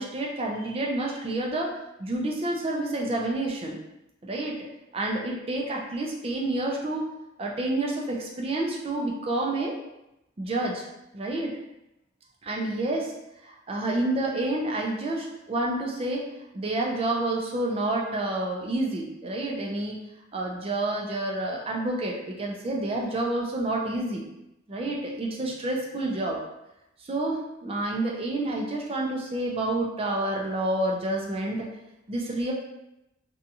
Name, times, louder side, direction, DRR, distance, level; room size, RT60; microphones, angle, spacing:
voice 1, 0.0-1.7 2.0-3.8 4.2-4.6 4.9-7.1 7.4-9.8 10.4-10.8 11.1-11.6 12.4-13.1 13.4-16.2 16.5-20.0 20.3-24.2 24.7-26.4 27.0-31.7 32.1-32.5, right 2 dB, 30° right, -1 dB, 0.4 m, -29 dB
2.6 x 2.3 x 2.7 m, 0.89 s
head